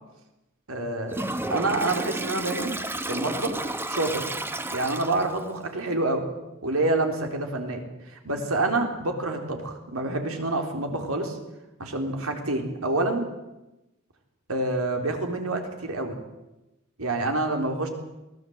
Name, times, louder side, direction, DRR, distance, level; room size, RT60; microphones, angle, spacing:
voice 1, 0.7-1.2 1.5-2.7 3.1-3.6 3.9-4.2 4.7-6.2 6.6-7.8 8.1-11.4 11.8-13.2 14.5-16.2 17.0-17.9, right 2 dB, 90° right, 4 dB, 3.8 m, -27 dB
Toilet flush, 1.1-5.5, right 1 dB, 10° right, 1.0 m, -32 dB
22.5 x 18.0 x 8.0 m, 0.98 s
head